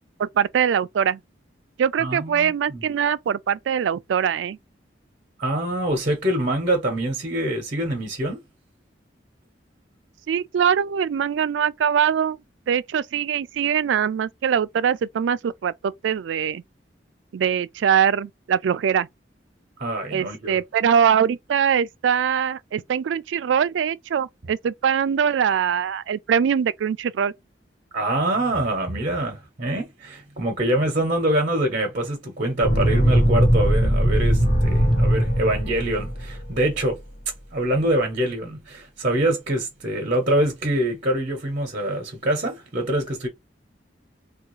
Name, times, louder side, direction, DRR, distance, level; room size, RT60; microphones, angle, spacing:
voice 1, 0.2-1.2 1.8-4.6 10.3-12.4 12.7-16.6 17.3-19.1 20.1-27.3, right 8 dB, 85° right, 0.3 m, -22 dB
voice 2, 2.0-2.8 5.4-8.4 19.8-20.6 27.9-37.0 37.5-43.3, right 1 dB, 45° right, 0.8 m, -25 dB
sound 1, 32.6-36.7, equal, 45° left, 1.0 m, -20 dB
3.5 x 2.3 x 3.1 m
head